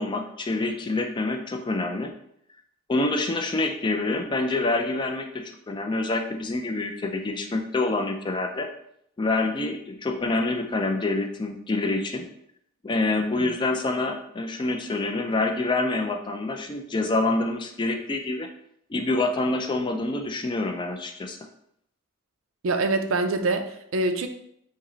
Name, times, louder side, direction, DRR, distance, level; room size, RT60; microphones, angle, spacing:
voice 1, 0.0-2.1 2.9-8.7 9.2-12.3 12.8-18.5 18.9-21.4, left 2 dB, 20° left, 4 dB, 0.3 m, -26 dB
voice 2, 22.6-24.3, right 2 dB, 70° right, 7 dB, 0.4 m, -25 dB
5.2 x 2.1 x 3.8 m, 0.73 s
head